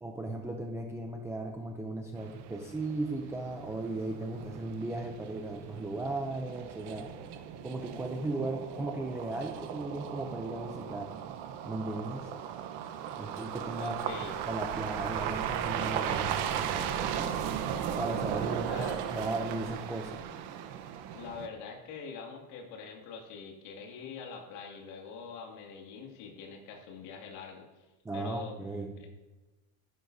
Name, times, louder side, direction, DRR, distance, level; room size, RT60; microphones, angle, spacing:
voice 1, 0.0-7.1 7.6-11.1 11.7-12.3 13.2-14.0 14.5-17.6 18.0-20.2 28.0-29.0, right 2 dB, 5° right, 2 dB, 0.3 m, -36 dB
sound 1, 2.2-21.5, right 9 dB, 65° right, 1.0 m, -37 dB
voice 2, 13.7-14.4 18.5-19.0 21.1-27.9 28.1-28.6 29.0-29.1, left 5 dB, 85° left, 1 dB, 2.3 m, -44 dB
15.0 x 10.5 x 2.7 m, 1.1 s
cardioid pair, 165°, 44 cm